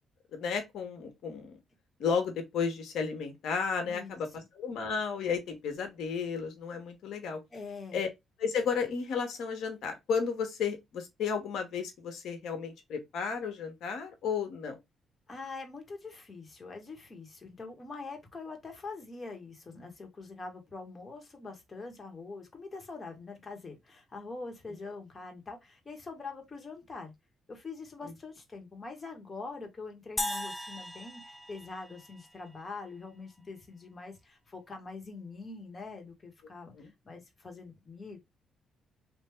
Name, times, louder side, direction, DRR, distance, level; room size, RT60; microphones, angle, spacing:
voice 1, 0.3-1.6 2.0-4.3 4.6-7.4 7.9-8.1 8.4-14.8 28.0-28.1 36.7-36.9, left 6 dB, 75° left, 1.3 m, -33 dB
voice 2, 3.8-4.2 7.5-8.0 15.3-27.1 27.5-38.2, left 3 dB, 30° left, 1.4 m, -44 dB
sound 1, 30.2-32.6, left 1 dB, 10° left, 0.4 m, -38 dB
3.5 x 2.6 x 3.3 m
cardioid pair, 90°, 0 cm